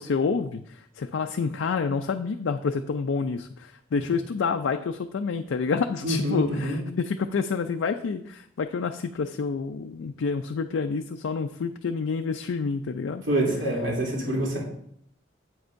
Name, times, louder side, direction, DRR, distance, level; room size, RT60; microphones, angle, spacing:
voice 1, 0.0-13.2, left 5 dB, 85° left, 6 dB, 0.4 m, -28 dB
voice 2, 6.0-6.8 13.3-14.6, right 1 dB, 75° right, -3 dB, 2.9 m, -26 dB
9.5 x 7.9 x 2.6 m, 0.69 s
head